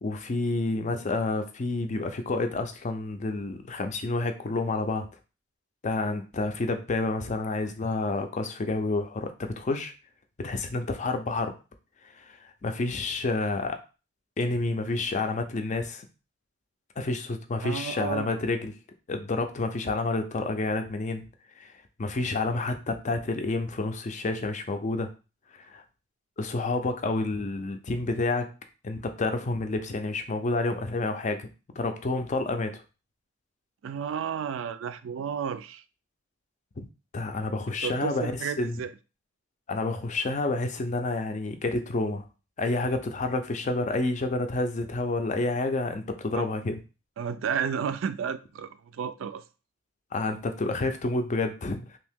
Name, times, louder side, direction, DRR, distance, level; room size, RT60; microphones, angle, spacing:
voice 1, 0.0-5.1 5.8-9.9 10.4-11.6 12.0-13.8 14.4-16.1 17.0-18.7 19.1-21.2 21.5-21.7 22.0-25.1 25.5-25.8 26.4-28.5 28.8-31.5 31.8-32.8 36.8-36.9 37.1-38.3 38.6-38.8 39.7-42.3 42.6-46.8 50.1-52.0, left 2 dB, 40° left, 0.4 m, -29 dB
voice 2, 17.6-18.3 33.8-35.8 37.8-38.9 46.3-46.5 47.2-49.4, right 7 dB, 85° right, 0.3 m, -32 dB
2.9 x 2.7 x 3.5 m
head